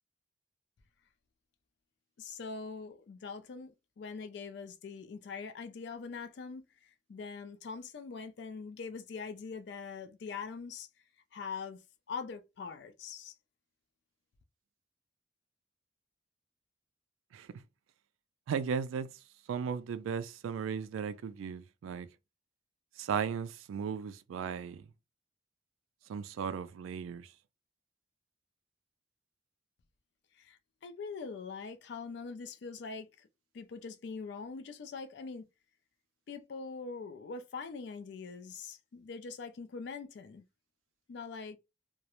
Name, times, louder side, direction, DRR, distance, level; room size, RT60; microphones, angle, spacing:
voice 1, 2.2-3.7 4.0-10.9 11.3-11.8 12.1-13.3 30.4-33.3 33.5-35.5 36.3-40.4 41.1-41.6, left 5 dB, 55° left, 0.3 m, -43 dB
voice 2, 18.5-19.1 19.5-22.1 23.0-24.8 26.1-27.2, right 6 dB, 85° right, 0.3 m, -36 dB
2.3 x 2.0 x 2.9 m
head